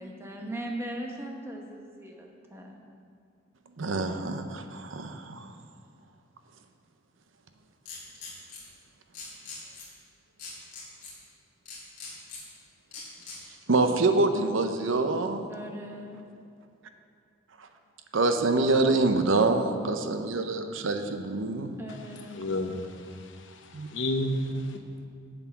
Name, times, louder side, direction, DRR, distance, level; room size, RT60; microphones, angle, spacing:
voice 1, 0.0-2.8 15.5-16.2 21.8-22.4, right 1 dB, 10° right, 1 dB, 0.9 m, -39 dB
voice 2, 3.8-5.5 13.7-15.5 18.1-21.7 23.7-23.9, right 3 dB, 80° right, 7 dB, 0.7 m, -26 dB
sound 1, 7.8-8.6 9.1-9.8 10.4-11.1 11.6-12.4 12.9-13.3, left 5 dB, 40° left, 2.6 m, -41 dB
voice 3, 21.9-24.8, left 1 dB, 75° left, 5 dB, 0.9 m, -32 dB
8.1 x 7.7 x 5.9 m, 2.4 s
head